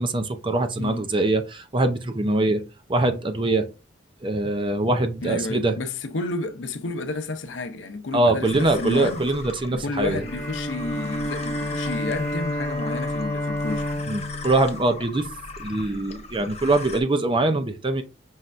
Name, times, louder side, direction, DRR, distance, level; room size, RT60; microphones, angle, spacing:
voice 1, 0.0-2.6 2.9-3.7 4.2-5.8 8.1-10.2 14.1-15.3 15.6-18.0, right 2 dB, 25° right, 0.6 m, -23 dB
voice 2, 5.2-9.2 9.7-13.9, left 2 dB, 80° left, 0.6 m, -31 dB
sound 1, 8.4-17.0, left 3 dB, 35° left, 0.6 m, -39 dB
Bowed string instrument, 10.1-15.6, left 1 dB, 15° left, 1.2 m, -30 dB
5.6 x 3.2 x 2.5 m
head